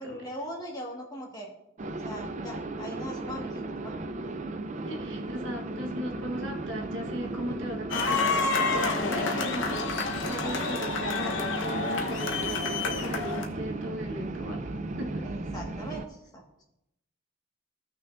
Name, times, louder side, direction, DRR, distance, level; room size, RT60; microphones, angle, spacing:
voice 1, 0.0-1.5 2.0-3.9 15.2-16.6, equal, 20° left, -2 dB, 1.6 m, -40 dB
sound 1, 1.8-16.1, right 2 dB, 35° right, 0.4 m, -35 dB
voice 2, 4.9-15.3, equal, 65° right, 1 dB, 1.3 m, -38 dB
sound 2, 7.9-13.4, left 4 dB, 60° left, 1.0 m, -29 dB
15.5 x 6.1 x 2.6 m, 0.83 s
head